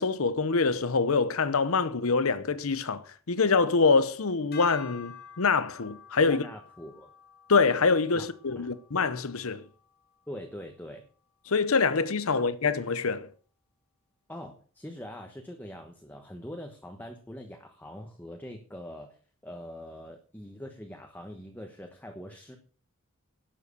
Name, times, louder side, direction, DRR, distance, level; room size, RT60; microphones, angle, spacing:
voice 1, 0.0-6.4 7.5-9.6 11.5-13.3, left 4 dB, 75° left, 0.8 m, -25 dB
sound 1, 4.5-10.9, left 8 dB, 45° left, 2.7 m, -50 dB
voice 2, 6.2-7.1 8.1-8.3 8.6-8.7 10.3-11.1 12.3-12.4 14.3-22.6, equal, 10° left, 1.2 m, -43 dB
11.5 x 7.7 x 6.7 m
head